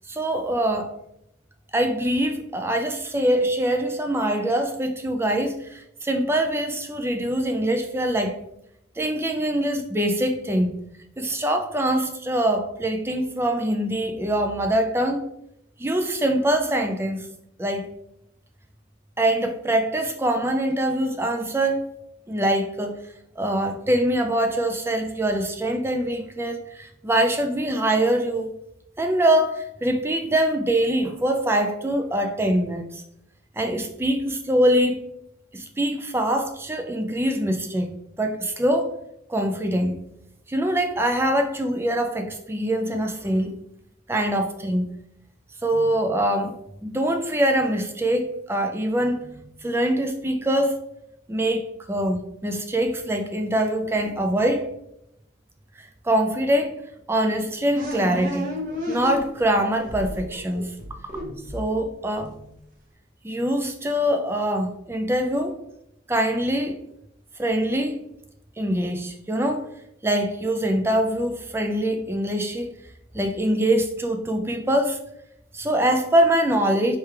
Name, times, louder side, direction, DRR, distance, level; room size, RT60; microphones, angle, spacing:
voice 1, 0.1-0.9 1.7-8.4 9.0-10.7 11.2-15.3 15.8-17.3 17.6-17.9 19.2-21.9 22.3-23.0 23.4-28.5 29.0-33.0 33.6-35.0 35.5-38.9 39.3-40.0 40.5-43.5 44.1-44.9 45.6-46.6 46.8-49.3 49.6-50.8 51.3-54.7 55.8-56.7 57.1-58.5 58.9-60.7 61.5-62.4 63.2-65.6 66.1-66.8 67.4-68.1 68.6-69.7 70.0-72.7 73.1-75.0 75.5-77.0, right 1 dB, 10° right, 0.3 m, -23 dB
sound 1, 57.7-59.5 59.9-62.1, left 1 dB, 40° right, 0.9 m, -32 dB
4.6 x 3.2 x 3.2 m
head